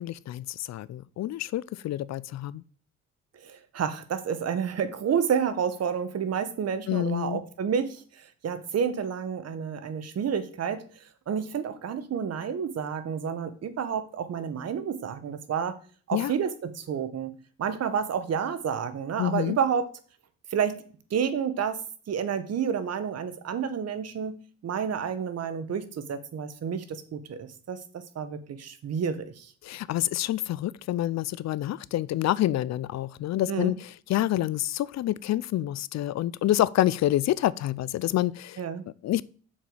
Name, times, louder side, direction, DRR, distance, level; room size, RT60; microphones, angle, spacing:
voice 1, 0.0-2.6 6.9-7.4 16.1-16.3 19.2-19.6 29.6-33.8 34.1-38.6 39.0-39.2, left 14 dB, 65° left, 0.5 m, -27 dB
voice 2, 3.3-15.8 16.1-19.9 20.5-20.8 21.1-21.8 22.1-29.5 33.5-33.7 38.6-38.8, right 7 dB, 55° right, 1.2 m, -30 dB
7.3 x 4.8 x 7.0 m
cardioid pair, 90°, 30 cm